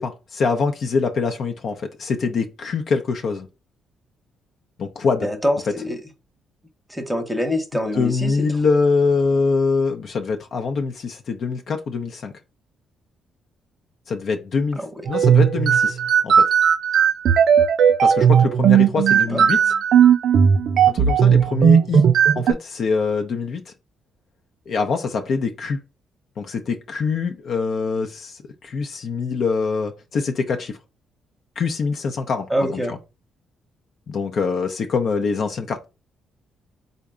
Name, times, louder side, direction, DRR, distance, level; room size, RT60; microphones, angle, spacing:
voice 1, 0.0-3.5 4.8-5.3 8.0-12.3 14.1-14.8 15.1-16.0 16.2-16.5 18.0-19.6 20.9-22.0 22.4-23.7 24.7-25.8 26.4-30.8 31.6-33.0 34.1-35.9, left 4 dB, 60° left, 0.5 m, -24 dB
voice 2, 5.2-6.0 6.9-8.3 14.8-14.9 19.1-19.4 32.5-32.9, equal, 5° right, 0.9 m, -25 dB
sound 1, 15.1-22.5, right 8 dB, 65° right, 0.4 m, -16 dB
3.8 x 2.2 x 3.6 m
cardioid pair, 90°, 0 cm